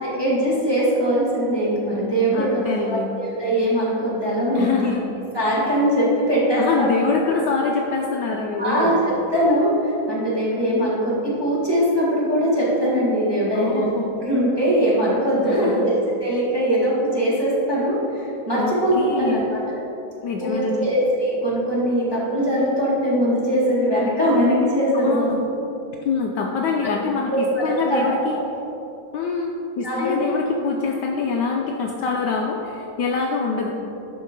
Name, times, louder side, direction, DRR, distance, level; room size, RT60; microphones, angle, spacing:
voice 1, 0.0-4.9 5.3-6.9 8.6-13.9 14.2-19.8 20.4-25.3 27.3-27.6 27.9-28.4 29.8-30.3, equal, 15° right, -8 dB, 1.7 m, -21 dB
voice 2, 2.3-3.1 4.5-5.0 6.6-9.0 13.5-14.1 15.5-15.9 18.6-19.5 20.2-20.9 24.9-25.4 26.0-28.4 29.1-33.8, left 4 dB, 70° left, 0 dB, 1.1 m, -25 dB
11.5 x 5.3 x 3.7 m, 2.9 s
omnidirectional pair, 2.2 m